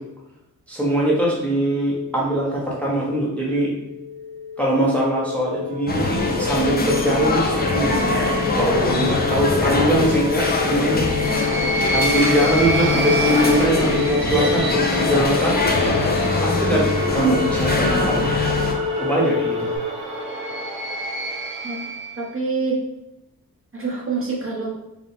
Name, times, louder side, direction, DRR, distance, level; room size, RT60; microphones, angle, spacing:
voice 1, 0.7-3.7 4.6-8.2 8.6-11.0 11.9-15.6 16.4-18.4 19.0-19.7, right 1 dB, 5° left, -5 dB, 0.9 m, -22 dB
sound 1, 2.8-19.8, left 6 dB, 65° left, 1.3 m, -28 dB
sound 2, 5.4-22.2, right 2 dB, 80° right, 1.0 m, -29 dB
sound 3, 5.9-18.7, left 3 dB, 25° left, 0.6 m, -23 dB
voice 2, 22.2-22.8 23.7-24.7, right 4 dB, 35° right, -5 dB, 1.3 m, -26 dB
4.6 x 2.4 x 3.4 m, 0.91 s
wide cardioid pair, 95°, 35 cm